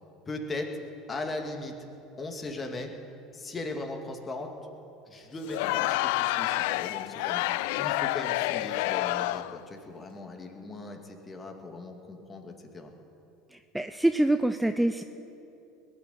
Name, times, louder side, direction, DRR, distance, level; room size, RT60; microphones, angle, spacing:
voice 1, 0.3-0.7 1.1-1.8 2.2-2.9 3.3-4.5 5.1-12.9, left 2 dB, 25° left, 3 dB, 2.2 m, -38 dB
Crowd, 5.4-9.6, left 17 dB, 70° left, 0.3 m, -28 dB
voice 2, 13.5-15.0, right 1 dB, 5° right, 9 dB, 0.5 m, -25 dB
20.5 x 7.0 x 9.3 m, 2.8 s
hypercardioid pair, 75°, 0 cm